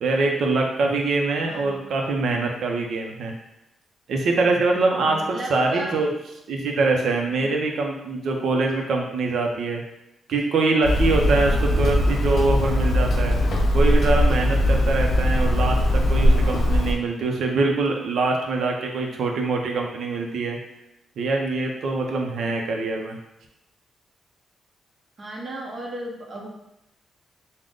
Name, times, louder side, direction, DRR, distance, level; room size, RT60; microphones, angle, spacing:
voice 1, 0.0-3.3 4.1-6.1 6.5-9.8 10.3-13.4 13.7-20.6 21.2-23.2, right 3 dB, 70° right, 1 dB, 0.6 m, -24 dB
voice 2, 1.4-1.9 5.0-6.0 11.3-11.7 25.2-26.5, right 1 dB, 35° right, -1 dB, 0.7 m, -36 dB
Hammer, 10.8-16.9, left 1 dB, 50° left, 0.5 m, -20 dB
3.7 x 2.1 x 3.5 m, 0.89 s
wide cardioid pair, 140°, 0 cm